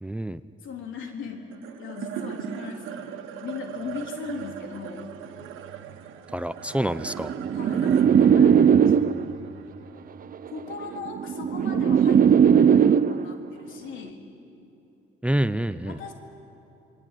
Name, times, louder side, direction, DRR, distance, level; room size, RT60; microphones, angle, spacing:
voice 1, 0.0-0.4 6.3-7.3 15.2-16.0, right 1 dB, 5° right, 14 dB, 0.7 m, -27 dB
voice 2, 0.6-1.5 1.8-5.1 7.5-9.3 10.5-14.2 15.9-16.1, left 5 dB, 80° left, 3 dB, 3.6 m, -38 dB
sound 1, 1.5-12.0, right 9 dB, 90° right, 1.5 m, -39 dB
sound 2, 7.1-9.4 10.5-13.4, right 8 dB, 45° right, 0.7 m, -19 dB
28.5 x 21.0 x 9.3 m, 2.9 s
cardioid pair, 90°, 20 cm